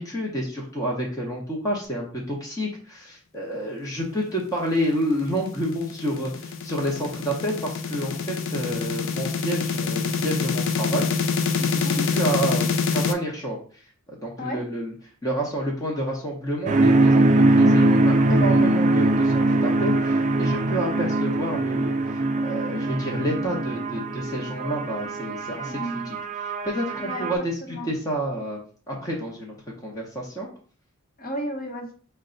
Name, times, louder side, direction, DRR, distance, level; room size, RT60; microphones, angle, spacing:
voice 1, 0.0-11.1 11.6-14.9 15.2-25.7 26.1-28.6 28.9-29.5 29.8-30.5, equal, 15° left, -3 dB, 0.8 m, -29 dB
sound 1, 5.0-13.1, left 5 dB, 60° left, 0.5 m, -26 dB
sound 2, 16.7-27.4, right 2 dB, 35° right, 0.4 m, -22 dB
voice 2, 25.6-26.1 26.9-27.3 27.6-27.9 31.2-31.9, equal, 40° left, 0 dB, 1.0 m, -33 dB
5.2 x 2.2 x 3.8 m, 0.43 s
head